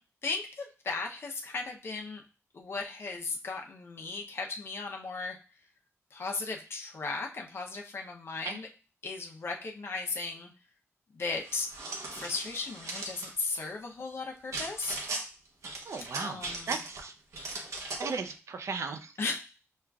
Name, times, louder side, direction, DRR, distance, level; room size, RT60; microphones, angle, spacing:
voice 1, 0.2-2.2 2.5-5.4 6.1-8.7 9.0-10.5 11.1-11.7 12.1-15.0 16.2-16.8 19.2-19.4, left 3 dB, 55° left, 1 dB, 0.6 m, -36 dB
sound 1, 11.4-13.3 14.5-15.2 15.6-17.0 17.3-18.2, right 2 dB, 85° right, 0.8 m, -38 dB
voice 2, 15.9-16.4 16.7-17.1 18.0-19.1, right 5 dB, 70° right, 8 dB, 0.5 m, -36 dB
6.3 x 2.4 x 2.3 m, 0.35 s
wide cardioid pair, 140°, 5 cm